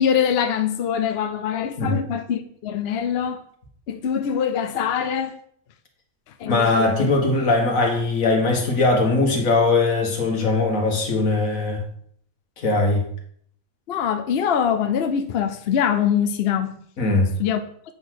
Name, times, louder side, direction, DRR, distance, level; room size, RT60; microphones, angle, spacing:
voice 1, 0.0-3.4 3.9-5.4 6.4-7.1 13.9-16.8 17.4-17.6, left 8 dB, 55° left, 0.8 m, -23 dB
voice 2, 6.4-11.8 12.6-13.1 17.0-17.3, left 3 dB, 80° left, 2.0 m, -20 dB
8.6 x 4.0 x 6.3 m
omnidirectional pair, 1.4 m